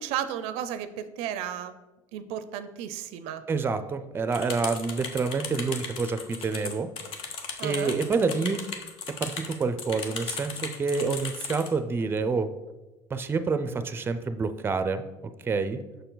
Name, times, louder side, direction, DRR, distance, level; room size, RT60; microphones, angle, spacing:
voice 1, 0.0-1.7 2.1-3.4 7.6-8.0, right 10 dB, 90° right, 12 dB, 0.4 m, -33 dB
voice 2, 3.5-6.9 7.6-8.6 9.2-12.5 13.1-15.0 15.4-15.8, right 4 dB, 20° right, 10 dB, 0.4 m, -27 dB
sound 1, 4.3-11.7, left 5 dB, 65° left, 0.9 m, -36 dB
6.4 x 4.5 x 3.9 m, 1.1 s
cardioid pair, 110°, 10 cm